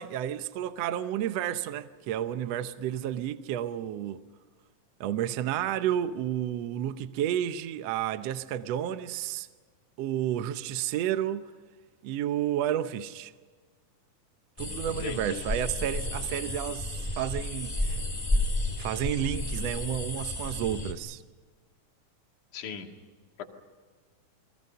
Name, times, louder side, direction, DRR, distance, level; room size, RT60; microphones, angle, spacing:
voice 1, 0.0-4.2 5.0-9.5 10.0-11.5 12.0-13.3 14.6-18.0 18.8-21.2, right 11 dB, 75° right, 1.5 m, -31 dB
sound 1, 14.6-20.9, left 2 dB, 15° left, 1.5 m, -32 dB
voice 2, 15.0-15.4 22.5-22.9 23.4-23.5, left 8 dB, 65° left, 3.4 m, -37 dB
30.0 x 23.0 x 5.6 m
omnidirectional pair, 3.9 m